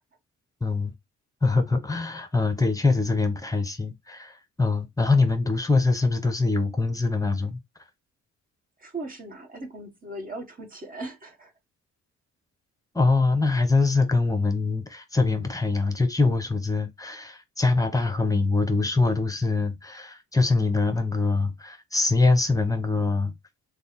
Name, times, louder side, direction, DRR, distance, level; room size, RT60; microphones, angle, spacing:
voice 1, 0.6-0.9 1.4-4.3 4.6-7.6 12.9-23.3, left 3 dB, 10° left, 1.0 m, -23 dB
voice 2, 8.8-11.5, right 2 dB, 30° right, 1.6 m, -38 dB
3.4 x 2.4 x 4.2 m
cardioid pair, 90°, 30 cm